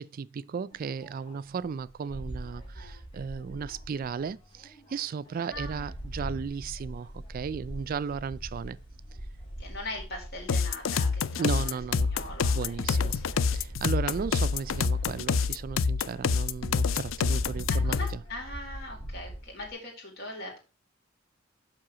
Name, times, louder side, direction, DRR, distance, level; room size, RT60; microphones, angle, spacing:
voice 1, 0.0-8.8 11.4-12.1 12.5-13.2 13.5-18.2, right 6 dB, 45° right, 0.3 m, -35 dB
sound 1, 0.7-19.7, right 1 dB, 25° left, 3.7 m, -42 dB
voice 2, 5.4-5.9 9.6-13.5 17.8-20.6, left 1 dB, 55° left, 4.4 m, -41 dB
sound 2, 10.5-18.2, left 5 dB, 85° left, 0.5 m, -27 dB
7.5 x 5.6 x 6.1 m
head